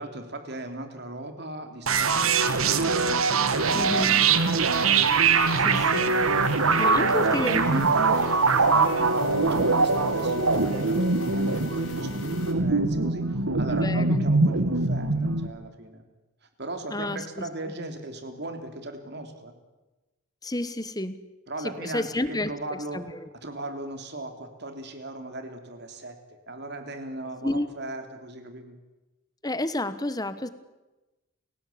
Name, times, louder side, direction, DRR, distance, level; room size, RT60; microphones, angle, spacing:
voice 1, 0.0-2.9 3.2-4.8 5.3-5.7 6.5-16.0 16.6-19.5 21.5-26.2 26.5-28.8, right 1 dB, 50° right, 6 dB, 3.3 m, -37 dB
sound 1, 1.9-15.5, right 4 dB, 85° right, 1.8 m, -23 dB
sound 2, 3.5-12.5, left 3 dB, 80° left, 5.6 m, -42 dB
voice 2, 3.7-4.2 5.6-6.2 6.8-7.8 13.7-14.3 16.9-17.2 20.4-21.2 21.6-23.0 27.4-27.7 29.4-30.5, left 1 dB, 20° left, 13 dB, 1.3 m, -30 dB
29.5 x 17.5 x 8.7 m, 1.1 s
head